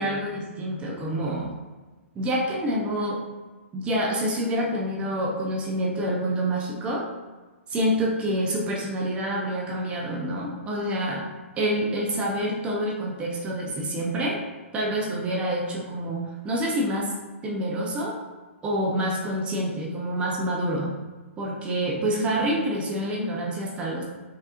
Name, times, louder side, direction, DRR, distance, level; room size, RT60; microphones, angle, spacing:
voice 1, 0.0-1.5 2.1-3.2 3.7-7.1 7.7-11.2 11.6-14.4 14.7-17.1 17.4-18.2 18.6-20.9 21.4-24.0, right 1 dB, 15° right, -2 dB, 0.7 m, -27 dB
5.4 x 3.4 x 2.5 m, 1.3 s
figure-of-eight pair, 120°, 7 cm